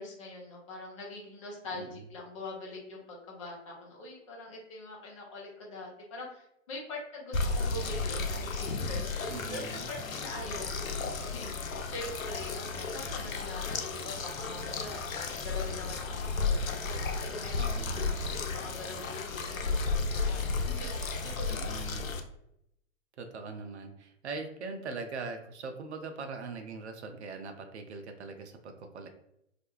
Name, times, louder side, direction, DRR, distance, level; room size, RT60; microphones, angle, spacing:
voice 1, 0.0-15.0 15.3-21.7, left 2 dB, 25° left, -2 dB, 0.5 m, -43 dB
sound 1, 7.3-22.2, left 4 dB, 90° left, 0.5 m, -33 dB
voice 2, 9.3-9.9 17.6-18.2 21.5-22.2 23.2-29.1, right 4 dB, 55° right, 6 dB, 0.5 m, -41 dB
2.4 x 2.1 x 3.0 m, 0.79 s
figure-of-eight pair, 120°, 40 cm